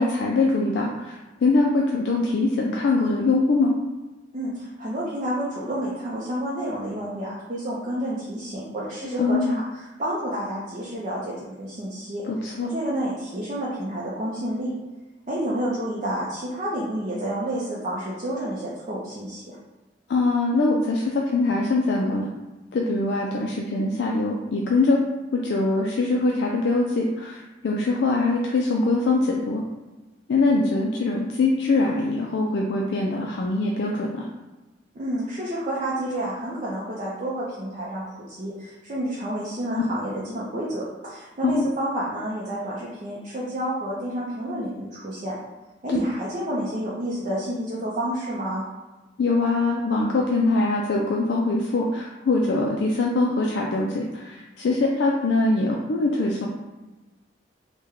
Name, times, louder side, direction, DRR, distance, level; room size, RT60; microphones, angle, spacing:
voice 1, 0.0-3.7 9.2-9.6 12.3-12.7 20.1-22.3 22.7-25.0 25.3-29.6 30.3-34.3 39.8-39.9 41.4-41.6 45.9-46.0 49.2-56.5, left 3 dB, 65° left, -1 dB, 0.3 m, -23 dB
voice 2, 4.3-12.3 12.6-14.7 15.3-19.6 34.9-45.4 45.8-48.6, right 1 dB, 40° right, -6 dB, 0.5 m, -30 dB
3.1 x 2.2 x 3.5 m, 1.1 s
head